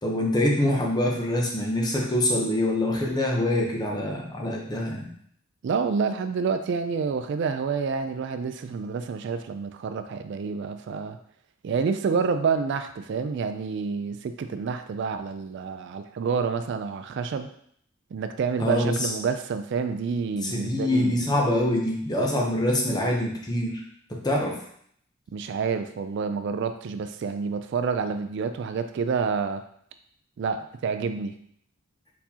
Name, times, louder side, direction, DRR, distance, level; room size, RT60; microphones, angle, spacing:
voice 1, 0.0-5.1 18.6-19.1 20.4-23.8 24.1-24.6, left 1 dB, 20° left, -1 dB, 0.8 m, -25 dB
voice 2, 5.6-11.2 11.6-17.5 18.1-21.2 25.3-29.6 30.4-31.4, right 5 dB, 55° right, 9 dB, 0.3 m, -28 dB
4.3 x 4.2 x 2.8 m, 0.66 s
head